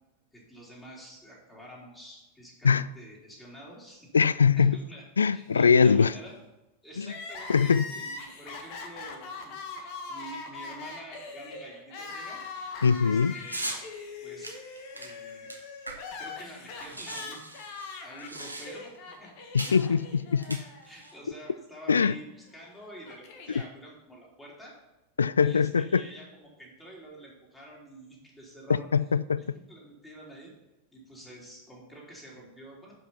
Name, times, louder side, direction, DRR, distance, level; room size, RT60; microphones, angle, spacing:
voice 1, 0.3-5.0 5.3-6.3 6.8-12.4 13.0-13.7 14.2-14.6 14.9-15.5 16.2-17.4 17.7-19.3 19.7-19.8 20.8-24.7 25.4-28.9 29.4-30.5 30.9-32.9, right 1 dB, 10° left, 3.5 m, -48 dB
voice 2, 4.1-4.8 5.2-6.1 7.0-7.1 7.5-7.8 12.8-13.3 19.5-20.6 21.9-22.1 25.2-26.0 28.7-29.4, left 6 dB, 70° left, 0.3 m, -22 dB
Crying sobbing, 7.0-21.2 21.5-21.6 22.5-23.7, left 4 dB, 45° left, 1.4 m, -42 dB
sound 1, 13.5-13.8 14.4-16.3 16.5-16.6 16.8-19.0 19.6-19.8 20.4-21.1, right 2 dB, 85° right, 1.4 m, -39 dB
11.0 x 5.4 x 5.6 m
figure-of-eight pair, 90°, 0 cm